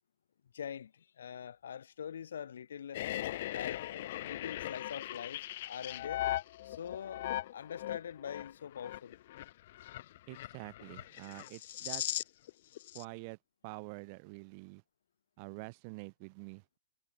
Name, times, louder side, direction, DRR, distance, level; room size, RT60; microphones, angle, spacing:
voice 1, 0.5-3.0 3.5-6.3 6.6-9.2, left 8 dB, 75° left, 1.5 m, -44 dB
sound 1, 2.9-12.5 12.8-13.0, left 15 dB, 55° left, 0.4 m, -39 dB
voice 2, 10.3-12.2 12.9-13.4 13.6-14.8 15.4-16.8, right 32 dB, 45° right, 0.7 m, -47 dB
hypercardioid pair, 120°, 0 cm